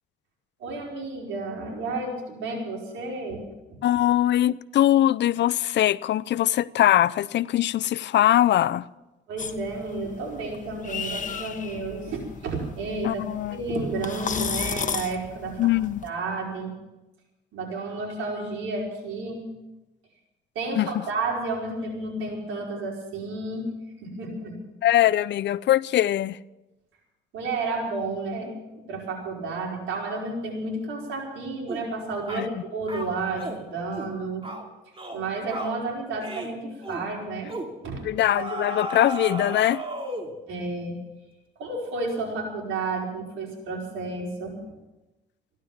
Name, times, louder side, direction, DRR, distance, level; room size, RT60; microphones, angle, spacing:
voice 1, 0.6-3.4 9.3-13.2 13.5-15.6 16.0-16.7 17.5-19.4 20.5-23.7 24.0-24.5 27.3-34.4 35.1-37.5 37.8-38.0 40.5-41.0 41.6-44.6, right 3 dB, 85° right, 4.9 m, -31 dB
voice 2, 3.8-8.9 13.0-13.6 15.6-16.0 20.8-21.0 24.8-26.4 32.3-32.6 38.0-39.8, left 12 dB, 65° left, 0.5 m, -22 dB
sound 1, 9.4-16.1, left 6 dB, 40° left, 1.2 m, -35 dB
sound 2, 31.7-31.9 32.3-32.5 32.9-33.6 33.9-34.1 34.4-34.6 35.0-35.2 35.5-35.8 36.2-36.5 36.8-37.1 37.5-37.7 38.3-40.4, right 2 dB, 25° right, 2.6 m, -34 dB
15.5 x 11.5 x 7.3 m
cardioid pair, 90°, 20 cm